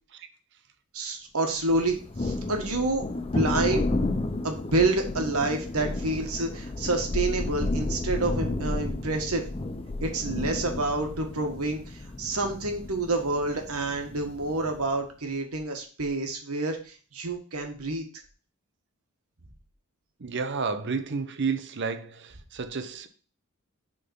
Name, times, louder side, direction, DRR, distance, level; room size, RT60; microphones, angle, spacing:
voice 1, 0.9-3.9 4.4-9.4 10.0-18.0, right 2 dB, 80° right, 1.5 m, -28 dB
Thunder, 1.7-14.9, left 2 dB, 25° left, 0.5 m, -32 dB
voice 2, 20.2-23.1, right 5 dB, 55° right, 0.6 m, -31 dB
6.7 x 3.8 x 5.4 m
head